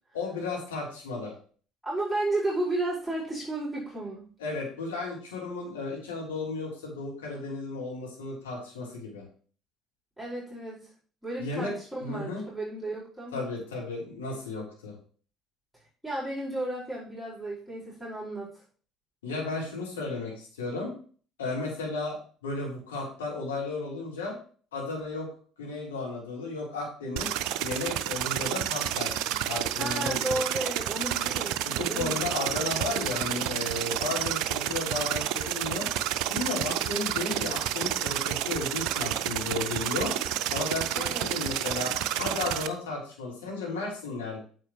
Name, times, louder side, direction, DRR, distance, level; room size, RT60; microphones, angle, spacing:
voice 1, 0.1-1.3 4.4-9.2 11.4-11.7 12.0-12.4 13.3-14.9 19.2-20.9 21.4-22.2 22.4-24.4 24.7-25.3 25.6-27.3 27.6-29.1 29.4-30.4 31.6-35.9 36.3-40.1 40.5-44.4, left 3 dB, 85° left, -4 dB, 3.4 m, -34 dB
voice 2, 1.8-4.3 10.2-10.9 11.2-13.4 16.0-18.5 29.8-32.2 40.9-41.3, right 1 dB, ahead, -6 dB, 4.9 m, -33 dB
sound 1, 27.2-42.7, right 12 dB, 65° right, 0.5 m, -30 dB
9.1 x 7.6 x 3.1 m, 0.42 s
hypercardioid pair, 60°, 0 cm